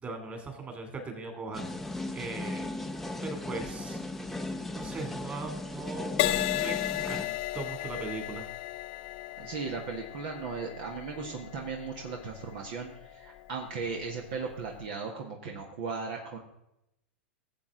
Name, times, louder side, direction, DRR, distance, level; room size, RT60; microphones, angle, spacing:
voice 1, 0.0-1.7 2.1-2.7 3.2-4.0 4.7-8.5, right 3 dB, 25° right, 5 dB, 2.9 m, -39 dB
sound 1, 1.5-7.3, left 2 dB, 5° left, 0.8 m, -37 dB
Crash cymbal, 6.2-13.8 14.5-14.8, left 16 dB, 50° left, 0.6 m, -35 dB
voice 2, 9.4-16.4, right 5 dB, 55° right, 1 dB, 1.6 m, -37 dB
16.0 x 7.9 x 3.9 m, 0.83 s
hypercardioid pair, 95°, 6 cm